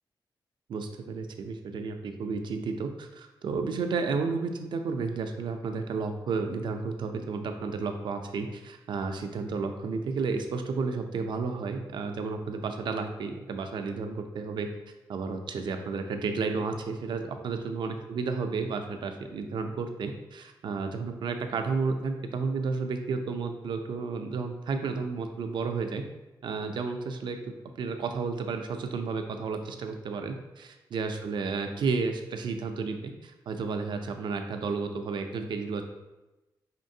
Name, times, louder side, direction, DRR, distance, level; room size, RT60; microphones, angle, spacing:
voice 1, 0.7-14.7 15.1-26.0 26.4-27.4 27.8-35.8, right 4 dB, 75° right, 6 dB, 0.4 m, -32 dB
4.3 x 3.1 x 2.7 m, 1.0 s
wide cardioid pair, 135°, 8 cm